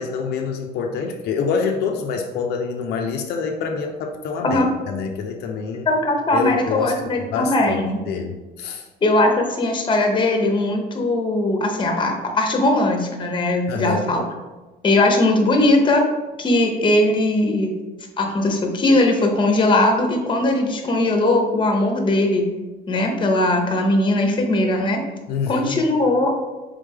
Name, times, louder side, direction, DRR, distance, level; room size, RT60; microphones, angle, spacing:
voice 1, 0.0-5.9 6.3-7.0 7.3-7.8 8.1-8.9 13.7-14.2 25.3-25.8, left 5 dB, 75° left, 3 dB, 0.5 m, -26 dB
voice 2, 5.9-8.0 9.0-14.3 14.8-16.0 16.4-17.7 18.2-22.5 22.9-25.0 25.5-26.3, left 2 dB, 30° left, 3 dB, 0.8 m, -19 dB
3.5 x 3.3 x 3.6 m, 1.2 s
cardioid pair, 110°, 17 cm